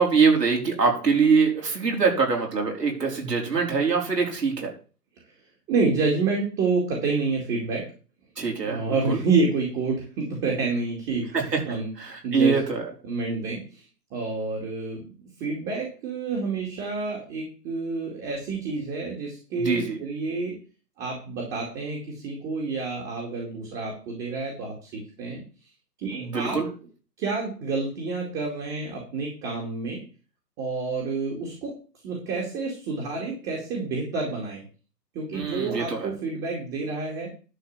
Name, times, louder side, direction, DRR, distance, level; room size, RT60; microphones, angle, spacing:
voice 1, 0.0-4.7 8.4-9.2 11.3-11.6 12.0-12.8 19.5-20.0 26.1-26.7 35.3-36.1, right 5 dB, 70° right, 1 dB, 4.7 m, -23 dB
voice 2, 5.7-7.8 8.6-12.6 13.1-13.8 14.1-15.0 15.4-20.6 21.0-25.4 26.0-26.6 27.2-30.0 30.6-31.7 32.0-34.6 35.1-37.3, right 4 dB, 20° right, 0 dB, 2.5 m, -28 dB
11.5 x 4.5 x 7.2 m, 0.36 s
hypercardioid pair, 140°, 49 cm